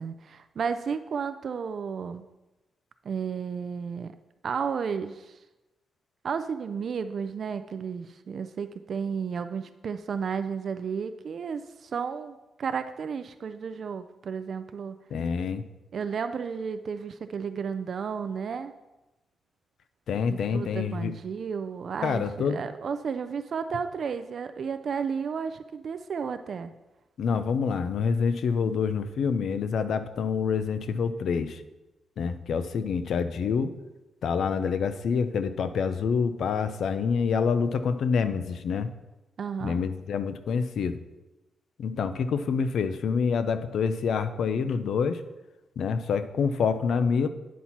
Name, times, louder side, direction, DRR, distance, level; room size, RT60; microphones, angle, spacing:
voice 1, 0.0-2.2 3.0-4.2 4.4-5.4 6.2-15.0 15.9-18.7 20.3-26.7 39.4-39.8, right 6 dB, 45° right, 10 dB, 0.3 m, -33 dB
voice 2, 15.1-15.7 20.1-21.1 22.0-22.6 27.2-31.6 32.2-33.7 34.2-38.9 39.6-41.0 41.8-45.2 45.8-47.3, left 6 dB, 60° left, 11 dB, 0.5 m, -27 dB
9.3 x 4.2 x 5.8 m, 1.0 s
wide cardioid pair, 175°, 0 cm